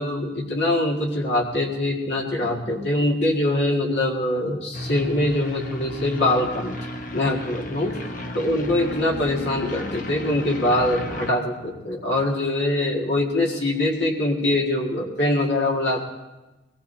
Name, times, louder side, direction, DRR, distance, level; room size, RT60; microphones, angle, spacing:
voice 1, 0.0-6.7 7.1-8.0 8.3-16.0, left 1 dB, 70° left, -2 dB, 1.9 m, -23 dB
sound 1, 4.7-11.3, left 1 dB, 45° left, 0.9 m, -34 dB
22.5 x 19.0 x 2.7 m, 1.1 s
head